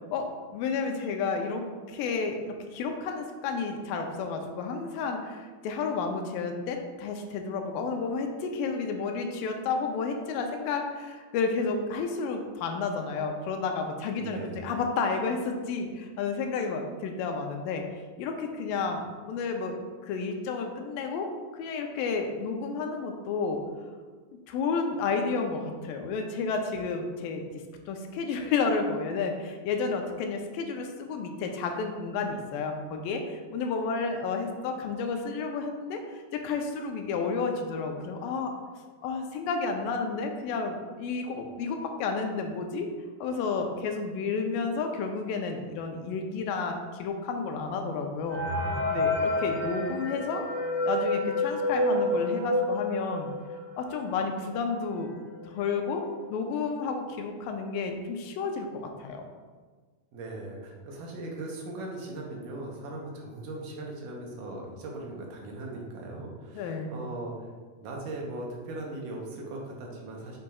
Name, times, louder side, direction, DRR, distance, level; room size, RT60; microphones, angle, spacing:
voice 1, 0.1-17.8 18.2-19.8 20.0-23.6 24.5-27.5 27.9-38.5 39.0-42.9 43.2-48.4 48.9-50.4 50.9-53.3 53.8-55.1 55.4-59.2 66.6-66.9, left 4 dB, 80° left, 4 dB, 2.3 m, -31 dB
voice 2, 14.2-14.6 60.1-67.3 67.8-70.4, right 2 dB, 75° right, -1 dB, 2.4 m, -39 dB
sound 1, 48.3-53.7 54.2-54.3 54.5-54.6 55.3-55.4 55.8-56.1, left 1 dB, 30° left, 0.5 m, -29 dB
8.5 x 5.8 x 2.3 m, 1.5 s
omnidirectional pair, 4.1 m